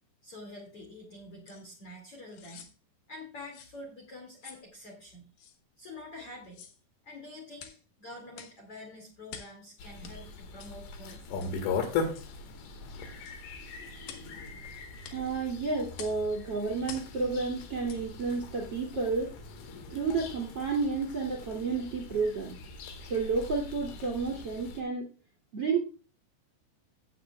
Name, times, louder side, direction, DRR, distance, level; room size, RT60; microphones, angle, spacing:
voice 1, 0.2-2.7 3.1-5.3 5.8-6.6 7.0-11.5, left 1 dB, 40° left, 1 dB, 2.4 m, -47 dB
sound 1, 1.5-1.6 2.3-2.7 3.5-3.8 4.4-4.7 5.4-5.6 6.4-6.8 7.6-7.8 8.3-8.6 9.3-9.6 10.0-10.2 10.6-10.8 11.4-11.6 12.1-12.3 13.2-13.4 14.0-14.3 15.0-15.2 15.9-16.2 16.8-17.1 17.8-18.0 18.5-18.6, left 8 dB, 70° left, 2.2 m, -47 dB
sound 2, 9.8-24.8, left 4 dB, 90° left, 4.2 m, -40 dB
voice 2, 15.1-19.3 19.9-22.6 23.1-25.1 25.5-25.8, right 4 dB, 35° right, 0 dB, 2.3 m, -31 dB
17.0 x 8.1 x 2.3 m, 0.35 s
omnidirectional pair, 5.5 m